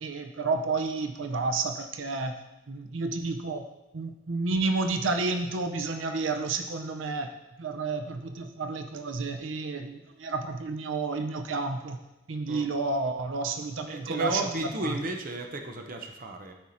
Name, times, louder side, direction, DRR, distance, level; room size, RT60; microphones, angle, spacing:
voice 1, 0.0-2.3 2.7-3.6 3.9-7.3 7.6-12.0 12.3-15.0, right 3 dB, 85° right, 6 dB, 0.6 m, -30 dB
voice 2, 13.9-16.5, right 2 dB, 45° right, 3 dB, 0.9 m, -33 dB
12.5 x 4.8 x 4.1 m, 0.97 s
head